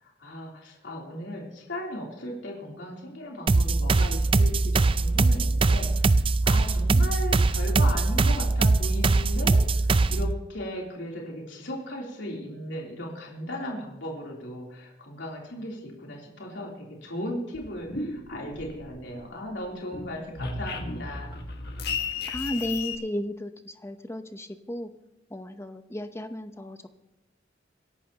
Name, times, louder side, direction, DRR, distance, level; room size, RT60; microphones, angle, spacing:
voice 1, 0.0-21.3, left 1 dB, 80° left, -2 dB, 3.4 m, -37 dB
sound 1, 3.5-10.3, right 3 dB, 30° right, 0.4 m, -22 dB
sound 2, 17.5-19.2 19.6-23.0, left 4 dB, 60° left, 1.7 m, -34 dB
voice 2, 22.3-24.9 25.3-26.9, left 1 dB, 15° left, 8 dB, 0.8 m, -34 dB
25.5 x 11.5 x 2.9 m, 0.96 s
head